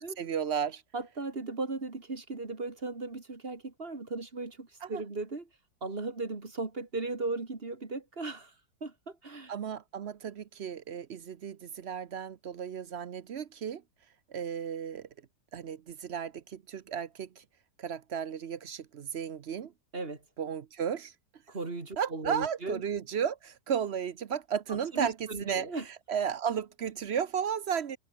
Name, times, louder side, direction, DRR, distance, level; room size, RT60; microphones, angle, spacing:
voice 1, 0.0-0.8 4.8-5.0 9.5-13.8 14.3-15.1 15.5-17.4 17.8-19.7 20.4-21.1 22.0-25.7 26.1-28.0, right 8 dB, 50° right, 0.8 m, -34 dB
voice 2, 0.9-5.5 5.8-8.5 8.8-9.5 19.9-20.2 21.5-22.8 24.7-25.9, right 3 dB, 30° right, 2.8 m, -37 dB
omnidirectional pair, 1.9 m